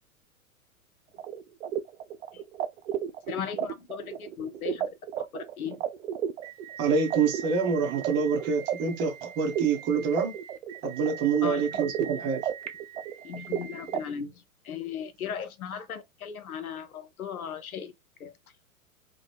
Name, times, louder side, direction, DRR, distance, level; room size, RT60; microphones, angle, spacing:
sound 1, 1.2-14.0, right 10 dB, 55° right, 0.5 m, -34 dB
voice 1, 3.3-4.9 5.2-5.8 11.4-11.8 13.2-14.3 14.6-17.9 18.2-18.3, left 8 dB, 75° left, 0.7 m, -37 dB
voice 2, 6.8-10.3 10.8-12.5, right 5 dB, 25° right, 0.7 m, -26 dB
2.9 x 2.1 x 3.2 m
figure-of-eight pair, 105°, 44 cm